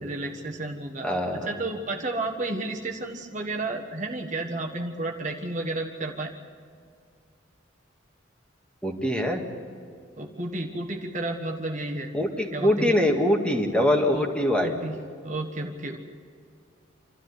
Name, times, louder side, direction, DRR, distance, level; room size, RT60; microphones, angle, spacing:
voice 1, 0.0-6.3 10.2-12.1 12.5-12.9 14.1-14.3 14.6-15.0 15.2-16.0, right 2 dB, 40° right, 2 dB, 1.5 m, -32 dB
voice 2, 1.0-1.5 8.8-9.4 12.1-14.7, left 1 dB, 5° left, 2 dB, 2.0 m, -23 dB
27.0 x 13.0 x 10.0 m, 2.3 s
head